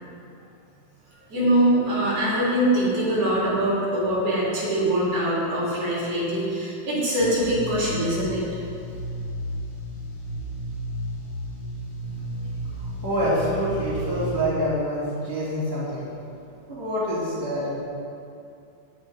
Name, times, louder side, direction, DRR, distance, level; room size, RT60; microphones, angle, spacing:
voice 1, 1.3-8.4, right 1 dB, 50° right, -8 dB, 3.7 m, -23 dB
sound 1, 7.2-14.4, right 1 dB, 80° left, 3.1 m, -33 dB
voice 2, 12.1-17.8, equal, 10° left, -10 dB, 2.0 m, -27 dB
15.5 x 5.7 x 3.8 m, 2.5 s
omnidirectional pair, 3.5 m